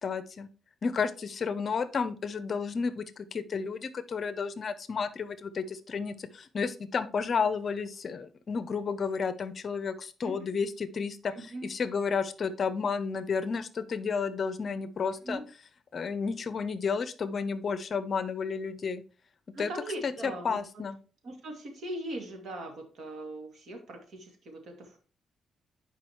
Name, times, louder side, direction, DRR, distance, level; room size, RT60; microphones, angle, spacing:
voice 1, 0.0-0.5 0.8-11.3 11.6-15.4 15.9-19.0 19.6-19.7 20.0-21.0, left 5 dB, 45° left, 14 dB, 0.6 m, -32 dB
voice 2, 10.2-10.6 11.3-11.7 15.2-15.4 19.5-20.8 21.2-25.0, right 1 dB, 65° right, 3 dB, 2.3 m, -40 dB
10.5 x 4.9 x 3.0 m, 0.38 s
cardioid pair, 115°, 0 cm